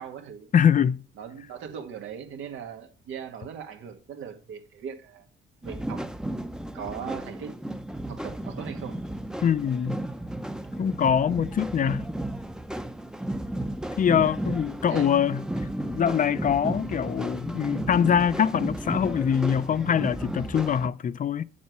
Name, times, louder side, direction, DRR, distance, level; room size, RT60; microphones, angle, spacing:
voice 1, 0.0-0.5 1.2-5.2 5.6-6.1 6.7-7.5 8.1-9.0 11.0-11.2 14.9-15.1, right 7 dB, 80° right, 1.7 m, -39 dB
voice 2, 0.5-1.0 9.4-10.0 10.8-12.1 14.0-15.4 15.9-21.4, left 8 dB, 40° left, 0.5 m, -23 dB
sound 1, 5.6-20.9, right 1 dB, 5° right, 0.6 m, -34 dB
8.6 x 7.3 x 4.6 m
cardioid pair, 90°, 20 cm